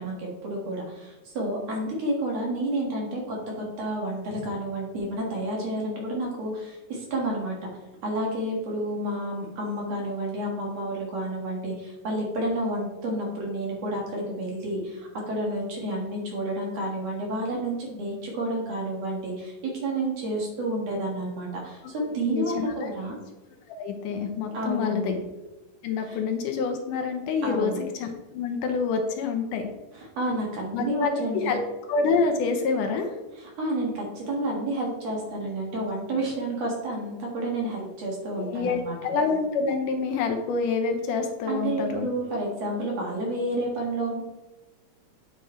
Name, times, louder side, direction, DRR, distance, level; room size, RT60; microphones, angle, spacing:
voice 1, 0.0-7.6 8.0-23.2 24.5-25.2 26.1-26.2 27.4-27.8 29.9-31.6 33.4-39.0 41.5-44.2, right 1 dB, 55° right, -2 dB, 2.6 m, -30 dB
voice 2, 22.3-22.9 23.8-25.2 25.8-29.7 30.7-31.6 31.9-33.1 38.4-42.1, left 4 dB, 75° left, 4 dB, 2.3 m, -27 dB
8.9 x 5.2 x 4.3 m, 1.1 s
omnidirectional pair, 3.9 m